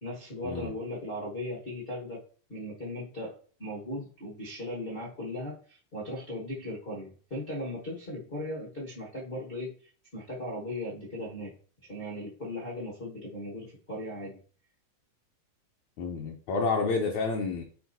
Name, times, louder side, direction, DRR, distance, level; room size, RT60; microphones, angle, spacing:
voice 1, 0.0-2.2 2.5-9.7 10.1-11.5 11.8-14.4, left 1 dB, 50° left, -5 dB, 0.6 m, -37 dB
voice 2, 16.0-17.6, left 4 dB, 70° left, 0 dB, 1.9 m, -29 dB
10.5 x 4.2 x 2.7 m, 0.43 s
omnidirectional pair, 3.6 m